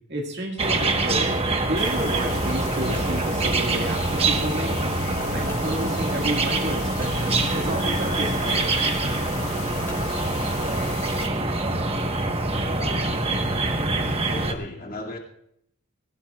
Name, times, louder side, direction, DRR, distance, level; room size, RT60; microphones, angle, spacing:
voice 1, 0.1-1.3 1.7-4.7 5.3-8.8, right 1 dB, 50° right, 0 dB, 2.1 m, -31 dB
sound 1, 0.6-14.5, right 2 dB, 25° right, 1.2 m, -25 dB
sound 2, 1.8-11.3, left 8 dB, 60° left, 0.6 m, -37 dB
sound 3, 1.8-2.1 2.6-3.1 4.1-4.4 4.9-5.0 5.5-5.7 7.0-7.2 8.0-8.1 8.4-8.7 9.8-10.1, left 1 dB, 10° left, 4.9 m, -45 dB
voice 2, 12.6-13.4 14.3-15.2, left 1 dB, 40° left, 0 dB, 2.3 m, -37 dB
22.0 x 16.5 x 2.4 m, 0.72 s
head